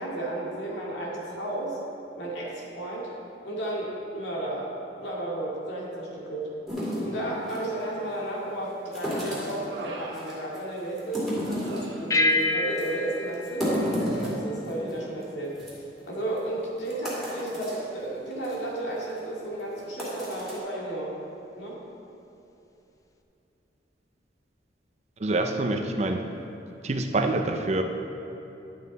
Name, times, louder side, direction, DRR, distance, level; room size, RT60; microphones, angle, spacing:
voice 1, 0.0-1.8 2.2-3.1 3.4-6.5 7.0-15.5 16.0-21.1 21.6-21.8, right 1 dB, 75° left, -4 dB, 2.1 m, -33 dB
sound 1, 6.7-7.7 8.9-9.6 10.1-10.6 11.0-11.9 12.3-12.4 12.8-12.9 13.3-14.9 15.2-15.3 15.6-15.7 16.4-16.5 16.9-17.8 18.3-18.5 19.0-19.2 19.8-20.6, equal, ahead, 2.3 m, -31 dB
Human voice, 7.8-8.4 8.9-11.0 11.4-12.5 12.8-13.0, right 2 dB, 90° right, 1.0 m, -45 dB
sound 2, 12.1-14.9, left 2 dB, 20° left, 0.4 m, -28 dB
voice 2, 25.2-26.3 26.8-27.8, right 2 dB, 35° right, 5 dB, 0.5 m, -26 dB
11.0 x 7.3 x 4.0 m, 2.9 s
head